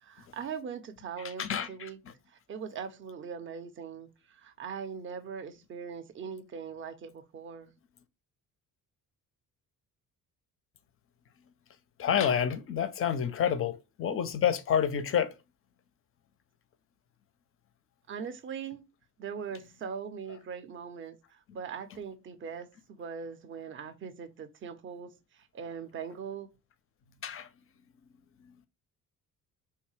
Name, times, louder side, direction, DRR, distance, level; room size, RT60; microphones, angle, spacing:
voice 1, 0.0-2.0 2.5-7.7 18.1-18.8 19.2-26.5, right 6 dB, 25° right, 0.5 m, -41 dB
voice 2, 1.4-1.9 12.0-15.3 27.2-27.5, left 8 dB, 30° left, 0.4 m, -28 dB
2.7 x 2.2 x 3.1 m
hypercardioid pair, 50°, 47 cm